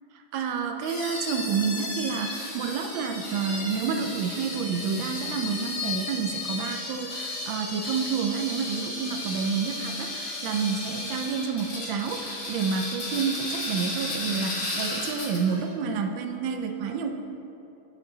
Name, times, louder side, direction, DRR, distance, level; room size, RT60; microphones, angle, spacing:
voice 1, 0.3-17.1, right 6 dB, 75° right, 5 dB, 1.2 m, -29 dB
sound 1, 0.8-15.6, left 2 dB, 65° left, 2.4 m, -34 dB
8.3 x 6.5 x 3.8 m, 3.0 s
omnidirectional pair, 2.4 m